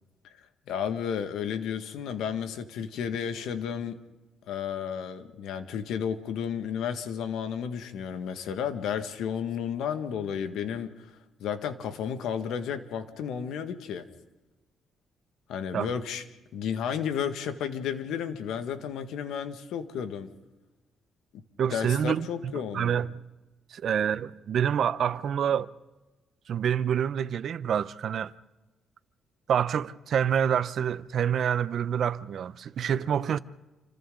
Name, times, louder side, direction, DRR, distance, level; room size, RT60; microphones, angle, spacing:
voice 1, 0.7-4.0 4.5-10.9 11.4-14.1 15.5-16.2 16.5-20.3 21.7-23.0, left 8 dB, 85° left, 1.8 m, -32 dB
voice 2, 21.6-22.3 22.5-23.1 23.7-25.7 26.5-28.3 29.5-33.4, right 8 dB, 60° right, 0.8 m, -27 dB
29.0 x 25.5 x 3.9 m
cardioid pair, 90°, 0 cm